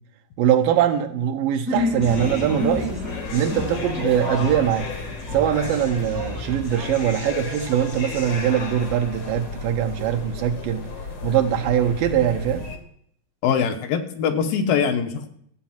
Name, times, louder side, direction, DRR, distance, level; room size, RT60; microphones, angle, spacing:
voice 1, 0.4-3.0 3.3-4.9 5.3-10.9 11.2-12.7, right 9 dB, 75° right, 3 dB, 2.5 m, -22 dB
sound 1, 1.6-7.2, left 1 dB, 10° right, 1.0 m, -31 dB
sound 2, 2.0-12.8, left 4 dB, 55° left, 1.2 m, -34 dB
voice 2, 13.4-15.3, left 7 dB, 75° left, 6 dB, 2.5 m, -22 dB
13.0 x 8.2 x 5.8 m, 0.68 s
omnidirectional pair, 4.3 m